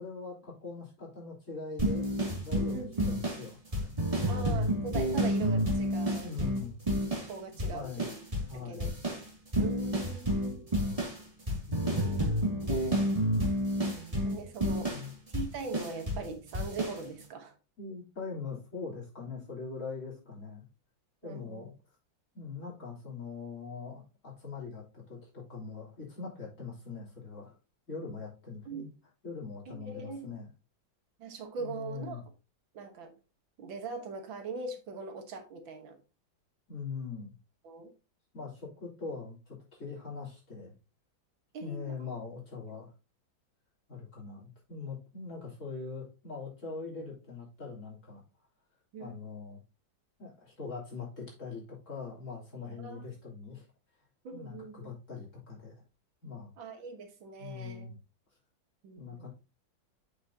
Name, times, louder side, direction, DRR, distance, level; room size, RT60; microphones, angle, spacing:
voice 1, 0.0-3.9 6.2-6.8 7.7-8.1 8.5-8.9 11.7-12.0 14.8-15.1 17.8-20.6 21.2-21.7 22.3-27.6 27.9-28.9 29.2-30.5 31.6-32.2 36.7-37.3 38.3-40.7 41.6-42.9 43.9-48.2 49.0-49.6 50.2-53.7 54.3-55.8 56.2-56.5 57.4-58.0 59.0-59.3, left 4 dB, 40° left, -5 dB, 3.8 m, -42 dB
sound 1, 1.8-7.3 7.6-8.5 8.8-16.3 16.5-17.0, equal, 20° right, 2.6 m, -30 dB
voice 2, 2.7-3.3 4.3-6.3 7.3-8.2 8.5-8.9 9.6-10.7 13.9-14.9 15.3-17.6 21.2-21.7 28.7-28.9 29.7-30.3 31.2-32.2 32.7-33.1 33.6-36.0 37.6-37.9 41.5-42.1 48.9-49.2 52.8-53.0 54.2-54.9 56.6-57.9 58.8-59.3, right 4 dB, 85° right, 6 dB, 2.1 m, -41 dB
7.6 x 6.7 x 2.8 m, 0.30 s
omnidirectional pair, 2.1 m